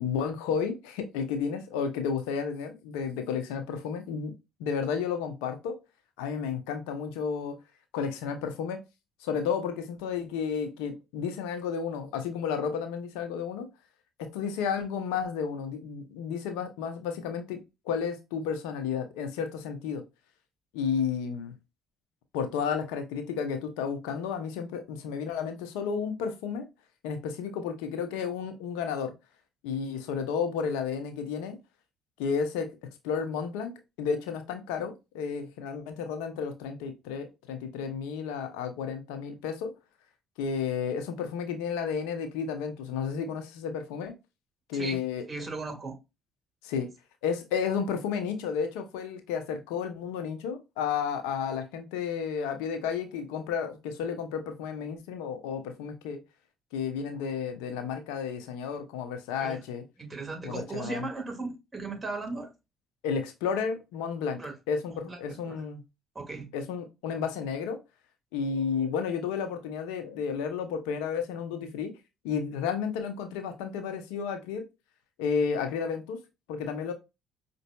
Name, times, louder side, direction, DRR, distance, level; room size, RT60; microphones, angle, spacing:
voice 1, 0.0-4.3 4.6-5.8 6.2-7.6 7.9-8.8 9.2-13.7 14.2-20.0 20.7-21.5 22.3-26.7 27.0-29.1 29.6-31.6 32.2-32.7 33.0-33.7 34.0-39.7 40.4-44.1 44.7-45.2 46.6-46.9 47.2-56.2 56.7-59.8 60.4-61.1 63.0-64.4 64.7-65.8 66.5-67.8 68.3-71.9 72.2-74.6 75.2-76.2 76.5-76.9, left 6 dB, 85° left, 0.7 m, -32 dB
voice 2, 45.3-46.0 59.4-59.6 60.0-62.5 64.4-64.5 64.9-65.2 65.5-65.6 66.1-66.5, right 3 dB, 25° right, 1.7 m, -37 dB
5.2 x 2.6 x 2.2 m
hypercardioid pair, 55°, 0 cm